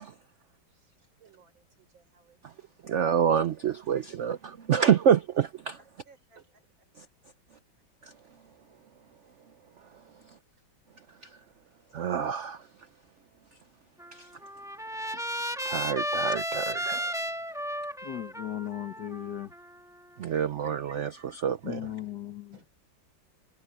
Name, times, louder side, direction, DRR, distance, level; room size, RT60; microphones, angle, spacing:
voice 1, 0.0-2.9 5.8-6.9 10.5-10.6 22.5-22.7, right 5 dB, 85° right, 5.0 m, -62 dB
voice 2, 2.8-5.8 7.0-7.1 8.0-8.1 11.2-11.3 11.9-12.6 14.1-14.3 15.6-17.2 20.2-21.8, right 8 dB, 70° right, 0.7 m, -27 dB
Trumpet, 14.0-20.2, equal, ahead, 1.4 m, -34 dB
voice 3, 18.0-19.5 21.6-22.6, left 11 dB, 60° left, 1.9 m, -37 dB
omnidirectional pair, 2.1 m